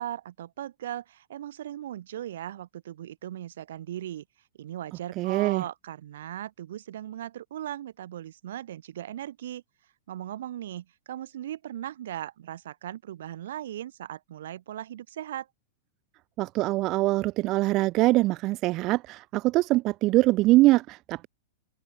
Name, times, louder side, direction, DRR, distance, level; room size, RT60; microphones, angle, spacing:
voice 1, 0.0-4.2 4.6-9.6 10.1-15.5, right 12 dB, 65° right, 2.0 m, -38 dB
voice 2, 5.2-5.6 16.4-21.3, right 19 dB, 25° right, 0.6 m, -23 dB
supercardioid pair, 175°, 0 cm